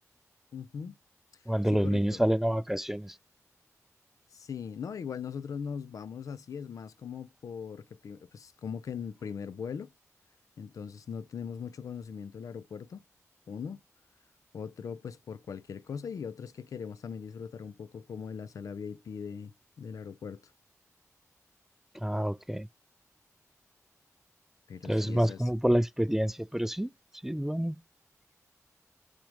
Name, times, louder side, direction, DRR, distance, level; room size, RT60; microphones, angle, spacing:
voice 1, 0.5-0.9 1.7-2.2 4.3-9.9 10.6-13.0 13.5-13.8 14.5-20.4 24.7-25.5, left 6 dB, 80° left, 0.4 m, -40 dB
voice 2, 1.5-3.1 22.0-22.7 24.9-26.9 27.2-27.8, equal, 5° right, 0.3 m, -28 dB
6.0 x 3.8 x 4.9 m
cardioid pair, 55°, 6 cm